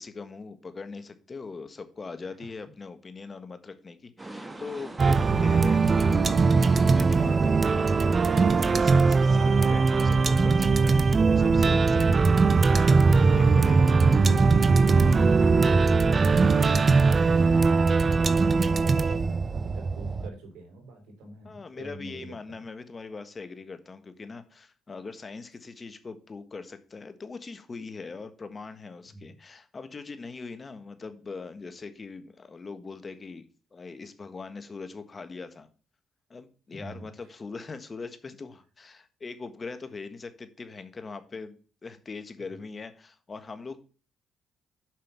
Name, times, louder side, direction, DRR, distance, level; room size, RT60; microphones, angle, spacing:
voice 1, 0.0-12.2 12.6-13.8 21.4-33.4 33.7-35.7 36.3-41.6 41.8-43.8, left 4 dB, 35° left, 10 dB, 1.5 m, -41 dB
sound 1, 4.2-10.2, right 2 dB, 20° right, 1.5 m, -42 dB
sound 2, 5.0-20.3, right 4 dB, 40° right, 0.6 m, -21 dB
voice 2, 13.0-13.9 19.5-22.3 29.1-29.2 36.7-37.1, right 2 dB, 85° right, 3 dB, 3.7 m, -44 dB
7.7 x 5.6 x 5.4 m, 0.38 s
cardioid pair, 75°, 0 cm